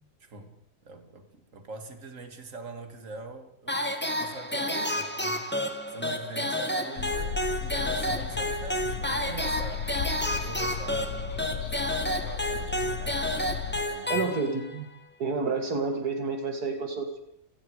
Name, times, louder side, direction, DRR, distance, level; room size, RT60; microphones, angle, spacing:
voice 1, 0.2-0.6 0.8-3.8 4.1-5.5 5.9-10.0 10.4-11.3 11.6-13.2 13.9-14.3, right 3 dB, 50° right, 2.7 m, -43 dB
sound 1, 3.7-14.8, left 1 dB, 5° left, 1.9 m, -30 dB
sound 2, 7.0-13.9, left 8 dB, 65° left, 1.7 m, -35 dB
voice 2, 14.1-14.9 15.2-17.2, right 4 dB, 70° right, 2.5 m, -29 dB
28.5 x 19.0 x 5.0 m
omnidirectional pair, 1.7 m